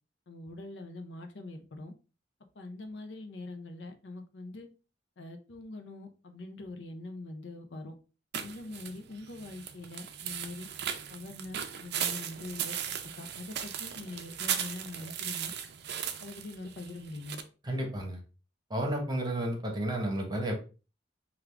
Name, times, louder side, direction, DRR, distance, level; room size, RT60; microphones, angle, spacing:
voice 1, 0.3-1.9 2.6-4.7 5.2-8.0 8.4-10.7 11.1-12.8 13.2-15.5 16.2-17.4, left 2 dB, 70° left, 0.6 m, -43 dB
sound 1, 8.3-17.4, right 9 dB, 65° right, 0.4 m, -37 dB
voice 2, 17.6-18.2 18.7-20.6, right 1 dB, 25° right, 0.9 m, -32 dB
3.5 x 2.4 x 3.3 m
head